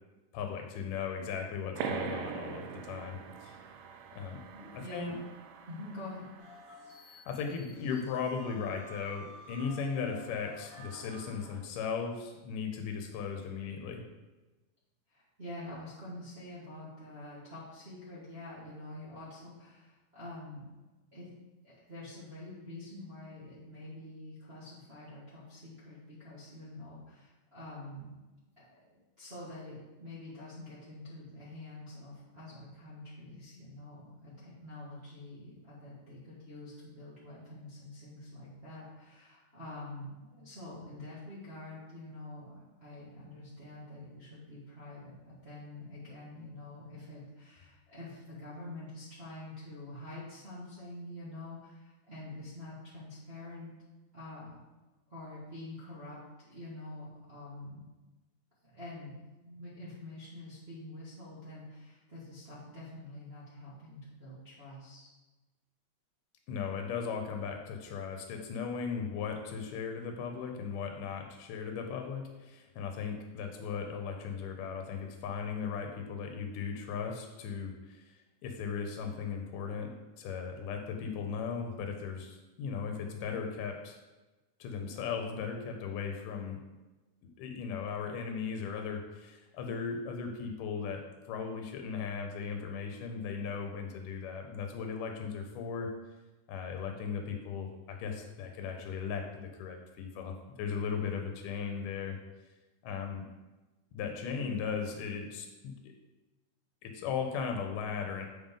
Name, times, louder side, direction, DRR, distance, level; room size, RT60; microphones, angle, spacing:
voice 1, 0.3-3.6 4.2-4.4 4.7-5.1 7.1-14.0 66.5-78.2 78.4-84.0 84.6-86.6 87.2-95.9 96.5-102.2 102.8-103.3 103.9-105.9 106.8-108.3, left 6 dB, 90° left, 4 dB, 2.3 m, -37 dB
sound 1, 1.8-7.0, right 7 dB, 80° right, 2.1 m, -42 dB
voice 2, 4.5-5.2 5.7-6.2 15.1-20.6 21.1-21.3 21.6-28.1 28.7-53.7 54.1-54.6 55.1-56.2 56.5-57.9 58.7-59.2 59.4-65.1, left 2 dB, 35° right, -9 dB, 1.0 m, -46 dB
sound 2, 6.4-11.6, equal, 30° left, 2.7 m, -51 dB
7.5 x 5.2 x 3.7 m, 1.1 s
omnidirectional pair, 3.7 m